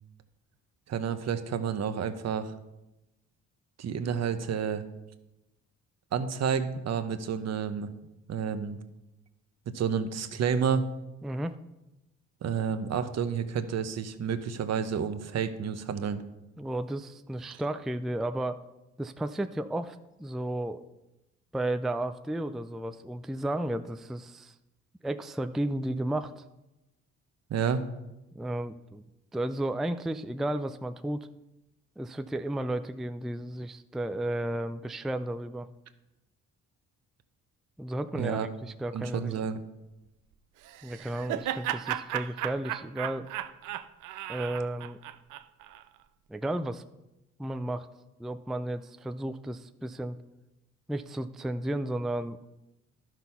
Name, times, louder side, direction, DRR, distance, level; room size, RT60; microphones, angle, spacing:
voice 1, 0.9-2.5 3.8-4.8 6.1-7.9 8.3-8.8 9.7-10.9 12.4-16.2 27.5-27.8 38.1-38.5 38.9-39.6, right 7 dB, 60° right, 10 dB, 0.9 m, -30 dB
voice 2, 11.2-11.5 16.6-18.6 19.0-20.8 21.5-24.5 25.0-26.4 28.3-29.0 29.3-31.3 32.0-35.7 37.8-39.3 40.8-43.3 44.3-45.0 46.3-46.8 47.4-47.9 48.2-50.2 50.9-52.4, right 1 dB, ahead, 10 dB, 0.4 m, -33 dB
Laughter, 40.6-45.8, right 12 dB, 85° right, 0.6 m, -35 dB
12.0 x 6.1 x 5.6 m, 0.96 s
cardioid pair, 90°, 30 cm